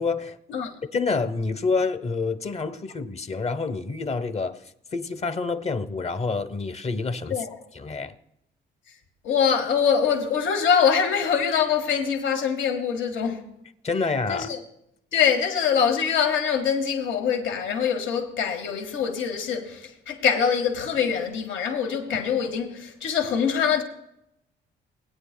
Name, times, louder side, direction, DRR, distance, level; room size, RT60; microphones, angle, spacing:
voice 1, 0.0-0.6 0.9-4.6 4.9-7.4 7.7-8.2 13.8-14.5, left 4 dB, 35° left, 0.9 m, -28 dB
voice 2, 9.2-13.4 14.3-14.6 15.1-23.8, left 7 dB, 75° left, 1.6 m, -24 dB
20.0 x 9.2 x 2.2 m
cardioid pair, 90°, 20 cm